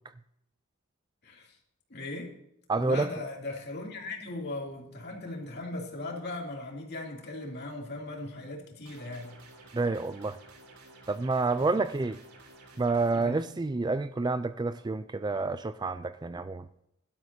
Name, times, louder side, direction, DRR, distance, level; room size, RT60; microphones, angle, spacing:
voice 1, 1.2-1.6 1.9-2.3 2.8-9.3 11.6-11.7 13.1-13.4, left 2 dB, 50° left, 2.8 m, -38 dB
voice 2, 2.7-3.1 9.7-10.4 11.1-12.2 12.8-16.7, right 3 dB, 20° right, 0.3 m, -29 dB
sound 1, 8.9-13.2, right 2 dB, 85° right, 3.1 m, -53 dB
16.5 x 12.0 x 2.8 m
head